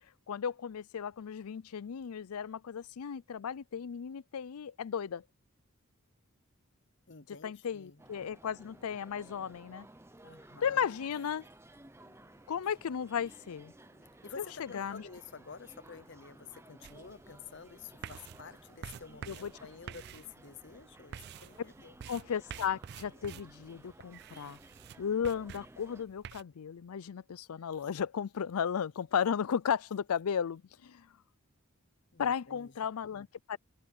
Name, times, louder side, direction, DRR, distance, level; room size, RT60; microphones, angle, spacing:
voice 1, 0.3-5.2 7.4-9.9 10.6-11.4 12.5-13.7 14.4-14.5 14.7-15.0 19.3-19.5 22.1-24.6 25.0-31.0 32.2-33.6, left 7 dB, 85° left, 0.4 m, -35 dB
voice 2, 7.1-8.1 10.2-11.0 14.2-22.0 32.1-32.7, left 5 dB, 55° left, 0.8 m, -50 dB
sound 1, 8.0-26.0, right 1 dB, 10° right, 0.7 m, -57 dB
sound 2, 11.0-19.1, left 1 dB, 35° left, 4.0 m, -69 dB
sound 3, 16.8-26.4, right 8 dB, 50° right, 0.3 m, -49 dB
open air
head